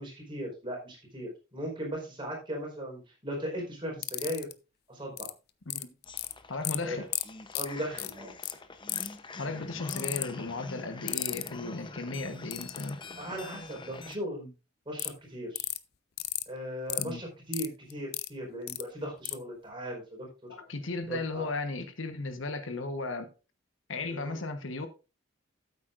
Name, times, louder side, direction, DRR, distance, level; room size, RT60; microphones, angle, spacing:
voice 1, 0.0-4.5 4.9-5.3 6.8-7.0 7.5-8.3 13.2-14.5 14.9-15.6 16.5-20.3 21.0-21.5 24.1-24.4, equal, 25° right, 4.6 m, -38 dB
sound 1, 4.0-4.5 5.2-5.3 5.7-6.3 6.6-6.8 7.1-7.2 7.5-7.7 8.0-8.1 8.4-8.5 8.9-9.2 9.9-10.2 11.1-11.5 12.5-12.9 15.0-15.1 15.5-15.8 16.2-16.4 16.9-17.0 17.5-18.3 18.7-18.8 19.2-19.3, left 16 dB, 55° left, 0.6 m, -32 dB
sound 2, 6.0-14.2, left 3 dB, 25° left, 0.8 m, -45 dB
voice 2, 6.5-7.0 9.4-13.0 17.0-17.2 20.5-23.3 23.9-24.9, left 3 dB, 75° left, 1.2 m, -35 dB
13.5 x 8.2 x 2.5 m
head